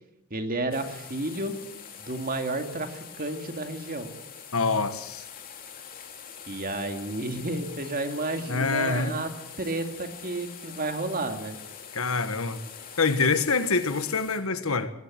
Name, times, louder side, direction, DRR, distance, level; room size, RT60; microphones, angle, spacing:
voice 1, 0.3-1.5 2.0-4.1 6.5-9.3 9.6-11.6, right 2 dB, 40° right, 6 dB, 2.3 m, -31 dB
sound 1, 0.7-14.4, left 7 dB, 40° left, 3.2 m, -44 dB
voice 2, 4.5-5.2 8.5-9.2 11.9-12.6 13.0-14.9, left 4 dB, 65° left, 11 dB, 1.5 m, -25 dB
21.0 x 16.5 x 7.6 m, 0.86 s
head